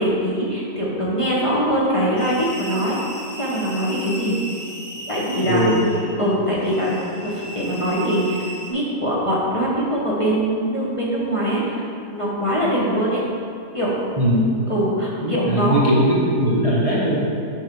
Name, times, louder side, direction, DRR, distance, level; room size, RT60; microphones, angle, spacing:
voice 1, 0.0-3.0 3.4-4.4 5.1-5.8 6.2-6.9 7.2-8.4 8.7-11.6 12.1-13.2 13.7-14.0 14.7-15.9, equal, 25° left, -7 dB, 1.1 m, -22 dB
Creaking Metal - Extremely High, 2.2-8.7, equal, 50° left, 1.3 m, -36 dB
voice 2, 14.2-14.5 15.2-17.2, equal, 25° right, -7 dB, 0.9 m, -19 dB
7.2 x 5.3 x 4.7 m, 2.4 s
omnidirectional pair, 1.6 m